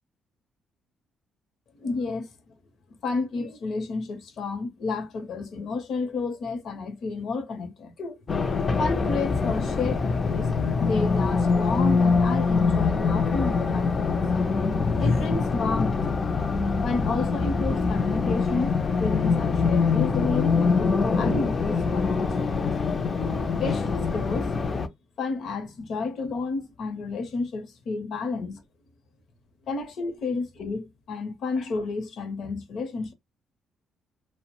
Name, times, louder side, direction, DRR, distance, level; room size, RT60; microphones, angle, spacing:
voice 1, 1.8-2.3 3.0-8.2 8.8-10.5 10.8-14.3 14.9-16.1 16.8-22.8 23.6-24.6 25.2-28.6 29.7-33.1, left 3 dB, 65° left, 0.7 m, -31 dB
Race car auto racing, 8.3-24.9, left 4 dB, 40° left, 0.4 m, -24 dB
2.5 x 2.1 x 2.9 m
cardioid pair, 90°, 0 cm